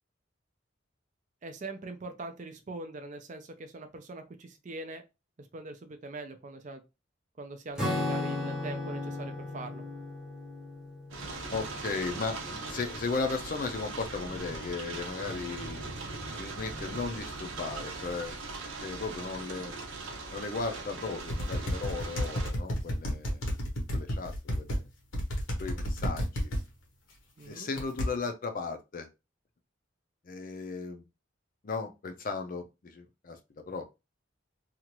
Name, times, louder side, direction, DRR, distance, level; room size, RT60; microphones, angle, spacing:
voice 1, 1.4-5.0 5.4-6.8 7.4-9.8 27.4-27.7, right 2 dB, 40° right, 6 dB, 0.5 m, -42 dB
Acoustic guitar / Strum, 7.8-12.6, left 2 dB, 5° right, 0.7 m, -36 dB
sound 1, 11.1-22.5, right 3 dB, 85° right, 0.8 m, -40 dB
voice 2, 11.5-15.8 16.4-18.3 18.8-19.7 20.3-23.4 23.9-24.9 25.6-26.5 27.4-29.1 30.2-31.0 31.6-33.8, left 4 dB, 45° left, 6 dB, 0.5 m, -36 dB
sound 2, 21.3-24.8 25.1-26.6 27.8-28.1, equal, 90° left, 1.0 m, -31 dB
2.8 x 2.4 x 2.9 m, 0.26 s
head